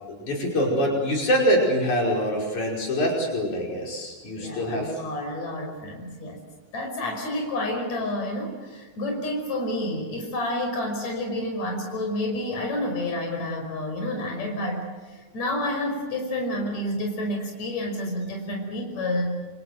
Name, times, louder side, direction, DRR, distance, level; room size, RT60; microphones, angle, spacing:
voice 1, 0.1-4.9, equal, 85° left, -1 dB, 6.8 m, -24 dB
voice 2, 4.4-6.4 6.7-19.4, left 1 dB, 70° left, 1 dB, 6.8 m, -29 dB
29.0 x 26.5 x 7.7 m, 1.2 s
omnidirectional pair, 3.3 m